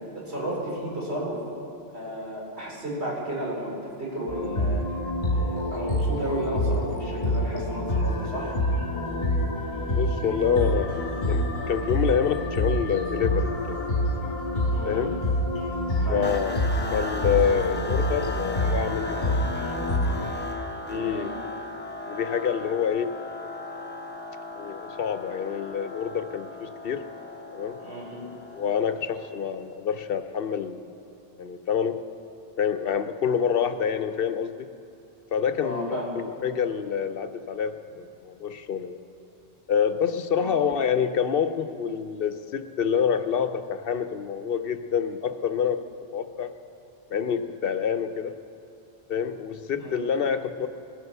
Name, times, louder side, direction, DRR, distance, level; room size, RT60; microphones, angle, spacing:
voice 1, 0.0-1.4 1.9-3.7 4.0-4.8 5.3-8.6 14.7-15.1 16.0-16.3 20.8-21.3 27.8-28.3 35.6-36.2 40.4-40.6 49.8-50.0, right 1 dB, 80° right, -5 dB, 4.6 m, -33 dB
sound 1, 4.3-20.3, left 1 dB, 50° left, 1.9 m, -27 dB
voice 2, 10.0-13.8 14.8-15.1 16.1-16.6 16.9-19.4 20.9-21.4 22.1-23.1 24.6-27.1 27.5-27.8 28.5-30.9 31.4-32.0 32.6-34.7 35.3-39.0 39.7-45.8 46.1-46.5 47.1-48.3 49.1-50.7, left 7 dB, 65° left, 10 dB, 0.8 m, -27 dB
sound 2, 16.2-29.6, left 2 dB, 10° left, 0.7 m, -37 dB
19.5 x 9.2 x 6.7 m, 2.8 s
omnidirectional pair, 1.1 m